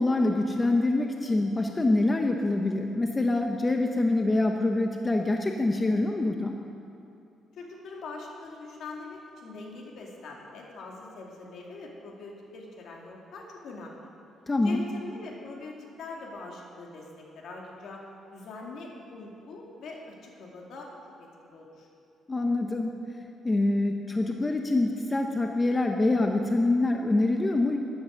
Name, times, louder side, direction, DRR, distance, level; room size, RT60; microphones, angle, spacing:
voice 1, 0.0-6.6 14.5-14.8 22.3-23.0 23.4-27.8, left 2 dB, 20° left, 3 dB, 0.7 m, -25 dB
voice 2, 7.5-14.1 14.6-18.0 18.3-20.9 21.2-21.9, left 3 dB, 65° left, -1 dB, 2.4 m, -43 dB
13.0 x 11.0 x 6.5 m, 2.6 s
cardioid pair, 135°, 0 cm